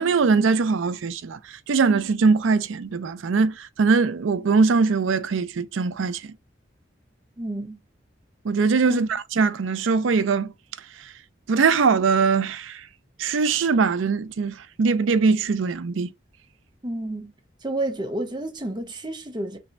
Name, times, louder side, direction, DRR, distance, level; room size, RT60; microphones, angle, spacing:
voice 1, 0.0-6.3 8.4-10.5 11.5-12.9 13.2-16.1, right 4 dB, 85° right, 0.4 m, -21 dB
voice 2, 7.4-7.8 8.8-9.1 16.8-17.3 17.6-19.6, right 1 dB, 20° right, 0.7 m, -30 dB
3.4 x 2.2 x 4.0 m
head